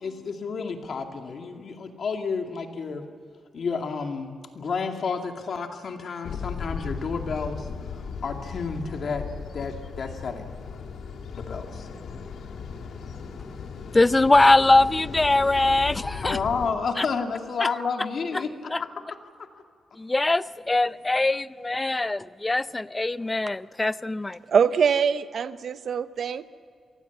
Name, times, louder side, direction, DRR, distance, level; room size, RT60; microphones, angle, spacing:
voice 1, 0.0-3.0 3.5-7.7 8.2-9.3 9.5-10.8 11.3-11.9 16.2-18.9 19.4-19.5, left 5 dB, 55° left, 4 dB, 2.3 m, -31 dB
sound 1, 6.2-16.7, left 5 dB, 80° left, 2.1 m, -37 dB
voice 2, 13.9-16.4 17.0-17.1 17.6-17.7 18.3-18.4 18.7-18.8 20.0-24.4, left 2 dB, 15° left, 16 dB, 0.5 m, -22 dB
voice 3, 24.5-26.5, right 6 dB, 60° right, 13 dB, 0.7 m, -23 dB
27.0 x 19.0 x 7.2 m, 2.2 s
wide cardioid pair, 145°, 0 cm